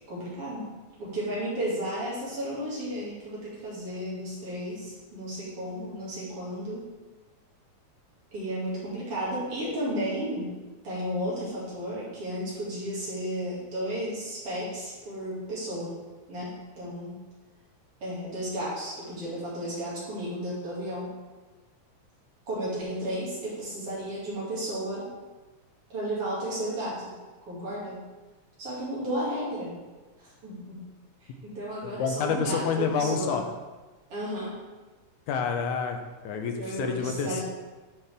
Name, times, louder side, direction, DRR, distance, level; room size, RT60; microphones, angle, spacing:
voice 1, 0.1-0.7 1.0-6.9 8.3-10.5 10.8-15.9 16.3-17.2 18.0-21.1 22.5-25.1 25.9-27.1 27.5-28.0 28.6-29.7 30.2-30.8 31.2-33.4 34.1-34.6 36.6-37.4, equal, 50° right, -7 dB, 2.9 m, -33 dB
voice 2, 31.8-33.4 35.3-36.0 36.2-37.4, left 6 dB, 85° left, 5 dB, 2.1 m, -28 dB
9.5 x 4.4 x 3.4 m, 1.2 s
omnidirectional pair, 3.3 m